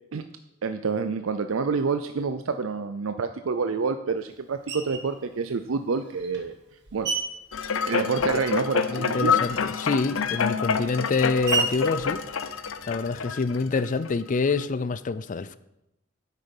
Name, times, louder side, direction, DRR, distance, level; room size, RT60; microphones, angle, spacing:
voice 1, 0.6-6.5 6.9-7.1 7.8-9.4, right 5 dB, 80° right, 0.5 m, -28 dB
Screech, 4.7-5.2 5.9-8.6 8.9-13.2, right 4 dB, 60° right, 1.6 m, -34 dB
sound 1, 7.5-14.1 14.6-14.7, left 6 dB, 80° left, 0.6 m, -27 dB
voice 2, 8.8-12.2 12.9-15.6, left 4 dB, 40° left, 0.4 m, -26 dB
9.5 x 8.2 x 5.3 m
head